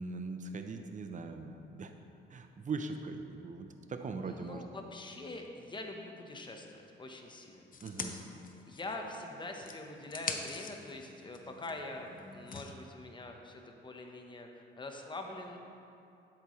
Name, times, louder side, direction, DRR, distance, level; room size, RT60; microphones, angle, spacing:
voice 1, 0.0-1.9 2.3-4.6 7.8-8.2, right 4 dB, 40° right, 6 dB, 0.8 m, -40 dB
voice 2, 4.2-7.7 8.0-8.2 8.7-15.6, left 2 dB, 25° left, 3 dB, 1.1 m, -44 dB
sound 1, 7.7-9.2 9.6-12.7, left 5 dB, 45° left, 0.7 m, -44 dB
10.5 x 8.4 x 3.2 m, 2.6 s
cardioid pair, 90°, 20 cm